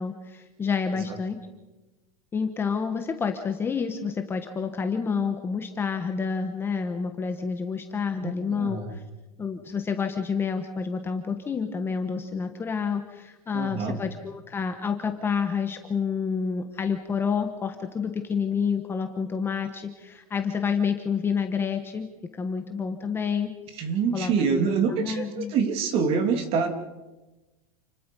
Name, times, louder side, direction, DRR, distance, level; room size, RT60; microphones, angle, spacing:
voice 1, 0.0-1.4 2.3-9.0 9.4-22.1 22.3-23.5 24.1-25.5, left 6 dB, 10° left, 6 dB, 1.2 m, -29 dB
voice 2, 8.2-8.9 13.5-14.0 23.7-26.7, right 5 dB, 30° right, 7 dB, 2.9 m, -26 dB
29.0 x 20.5 x 5.5 m, 1.1 s
supercardioid pair, 165°, 18 cm